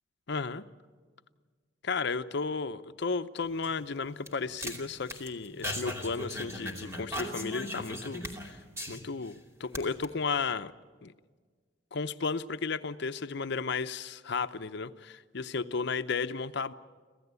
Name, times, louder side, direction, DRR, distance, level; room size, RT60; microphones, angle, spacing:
voice 1, 0.3-0.6 1.8-8.6 8.9-10.7 11.0-11.1 11.9-16.7, left 4 dB, 65° left, 10 dB, 0.7 m, -34 dB
sound 1, 3.4-9.3 9.6-10.0, equal, 15° right, 2.7 m, -39 dB
26.0 x 16.0 x 8.2 m, 1.5 s
head